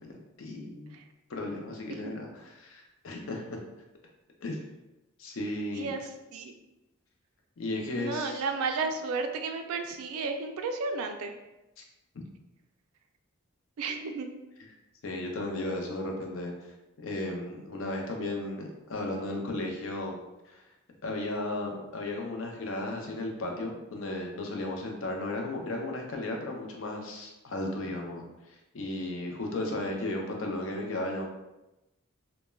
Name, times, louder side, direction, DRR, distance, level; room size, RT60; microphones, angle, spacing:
voice 1, 0.4-1.0 1.3-3.6 4.4-4.6 5.2-5.9 7.6-8.4 15.0-16.5 17.0-20.2 20.5-20.6 21.0-28.2 28.7-31.3, left 2 dB, 65° left, 1 dB, 0.4 m, -34 dB
voice 2, 5.7-6.5 8.0-11.3 13.8-14.3, right 4 dB, 80° right, 5 dB, 0.3 m, -33 dB
3.0 x 2.1 x 2.2 m, 0.98 s
head